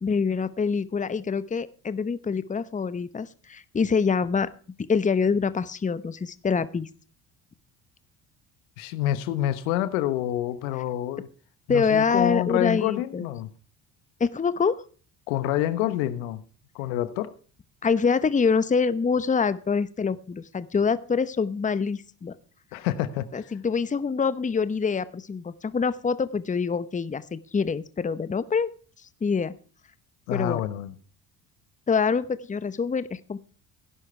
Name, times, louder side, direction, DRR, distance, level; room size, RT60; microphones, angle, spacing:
voice 1, 0.0-4.5 4.9-6.9 11.7-13.3 14.2-14.8 17.8-22.3 23.3-28.7 29.2-29.5 30.3-30.6 31.9-33.4, left 5 dB, 20° left, 0.9 m, -25 dB
voice 2, 8.8-11.3 11.7-13.5 15.3-16.4 16.7-17.3 22.7-23.5 30.3-30.9, left 13 dB, 80° left, 1.1 m, -27 dB
16.5 x 11.0 x 3.3 m
hypercardioid pair, 60°, 41 cm